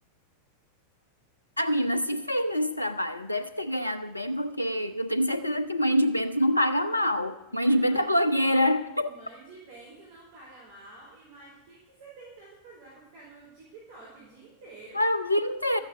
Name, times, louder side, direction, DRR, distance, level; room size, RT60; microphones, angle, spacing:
voice 1, 1.6-9.1 14.9-15.8, equal, 85° left, 12 dB, 0.5 m, -26 dB
voice 2, 7.5-8.1 9.0-15.0, right 3 dB, 50° right, -5 dB, 4.0 m, -49 dB
13.0 x 9.1 x 6.6 m, 0.97 s
figure-of-eight pair, 90°, 0 cm